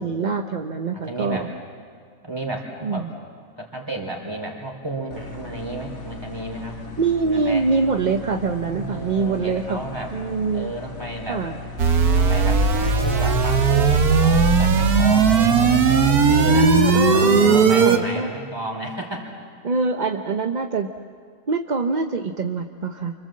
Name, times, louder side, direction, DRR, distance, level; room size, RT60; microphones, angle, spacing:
voice 1, 0.0-1.5 2.8-3.0 7.0-9.8 10.1-10.7 11.3-11.6 16.5-18.3 19.6-20.9 21.5-23.1, right 4 dB, 40° right, 5 dB, 0.7 m, -24 dB
voice 2, 0.9-1.5 2.2-3.1 3.6-6.8 7.2-7.7 8.7-10.1 10.5-11.5 12.1-16.7 17.1-19.4 19.6-19.8, right 2 dB, 15° right, 1 dB, 3.7 m, -32 dB
sound 1, 5.1-16.9, left 3 dB, 65° left, 2.4 m, -38 dB
sound 2, 11.8-18.0, right 5 dB, 85° right, 1.9 m, -17 dB
28.5 x 25.5 x 7.6 m, 2.1 s
omnidirectional pair, 1.6 m